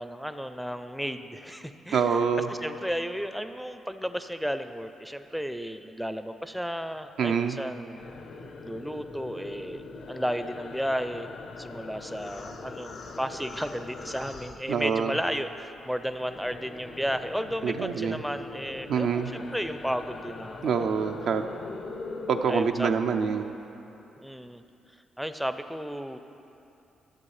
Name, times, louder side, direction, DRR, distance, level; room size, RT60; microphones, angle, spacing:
voice 1, 0.0-2.2 2.5-8.0 8.6-9.8 10.1-11.3 11.6-20.8 22.5-22.9 24.2-24.6 25.2-26.2, equal, ahead, 9 dB, 0.4 m, -33 dB
voice 2, 1.9-2.5 7.2-7.6 14.7-15.1 17.6-18.2 18.9-19.3 20.6-21.4 22.3-23.4, right 6 dB, 70° right, 6 dB, 0.4 m, -26 dB
sound 1, 8.0-15.3 15.6-23.6, left 3 dB, 60° left, 0.6 m, -42 dB
12.5 x 7.0 x 3.3 m, 2.9 s
supercardioid pair, 60°, 0 cm